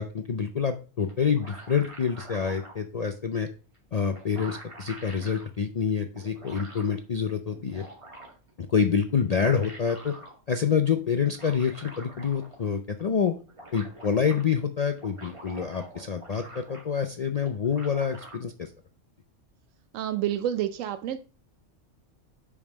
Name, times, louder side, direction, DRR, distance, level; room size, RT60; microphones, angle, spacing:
voice 1, 0.0-3.5 3.9-7.8 8.7-10.1 10.5-13.4 13.7-18.7, left 6 dB, 50° left, 6 dB, 0.5 m, -27 dB
sound 1, 1.1-2.8 3.7-3.8 4.1-5.4 6.1-6.9 7.5-8.5 9.2-10.3 11.2-12.7 13.0-13.1 13.3-14.4 14.9-17.0 17.3-18.4, right 2 dB, 25° right, 2.1 m, -46 dB
voice 2, 19.9-21.2, right 11 dB, 85° right, 8 dB, 1.0 m, -28 dB
5.4 x 4.8 x 6.1 m, 0.36 s
omnidirectional pair, 1.3 m